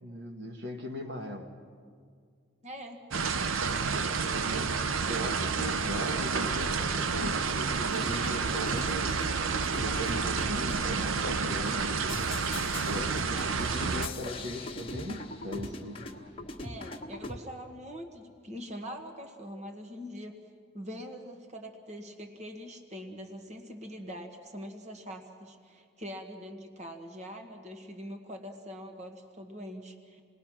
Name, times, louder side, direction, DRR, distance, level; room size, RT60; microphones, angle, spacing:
voice 1, 0.0-1.5 4.2-4.8 5.1-9.2 9.7-12.2 12.7-16.1, equal, 60° right, 3 dB, 1.4 m, -39 dB
voice 2, 2.6-3.0 14.2-14.4 16.6-20.4 20.7-30.2, equal, 35° right, 5 dB, 1.5 m, -43 dB
sound 1, 3.1-14.1, right 5 dB, 80° right, 0.7 m, -30 dB
sound 2, 7.9-17.4, left 2 dB, 25° left, 1.4 m, -41 dB
28.0 x 19.5 x 6.1 m, 2.1 s
head